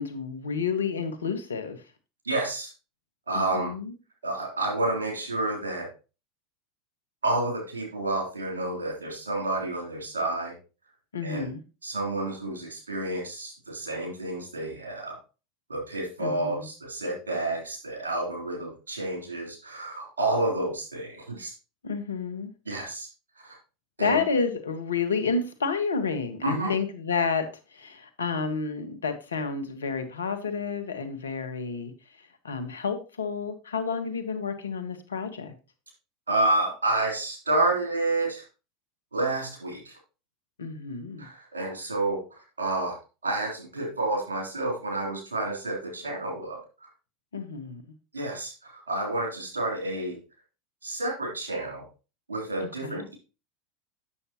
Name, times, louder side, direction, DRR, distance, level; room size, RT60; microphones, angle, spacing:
voice 1, 0.0-1.8 3.3-3.9 11.1-11.6 16.2-16.7 21.8-22.5 24.0-31.9 32.2-35.5 40.6-41.3 47.3-47.8 52.6-53.1, left 5 dB, 85° left, 1.1 m, -30 dB
voice 2, 2.3-2.7 3.3-3.7 4.2-5.9 7.2-10.5 11.2-11.5 11.8-15.2 15.7-21.5 22.7-23.1 23.4-23.6 24.0-24.2 26.4-26.7 36.3-38.4 39.1-40.0 41.2-43.0 43.2-46.6 48.1-50.2 50.8-51.8 52.3-53.1, right 2 dB, 90° right, 3.5 m, -29 dB
8.5 x 6.8 x 3.0 m
hypercardioid pair, 85°, 0 cm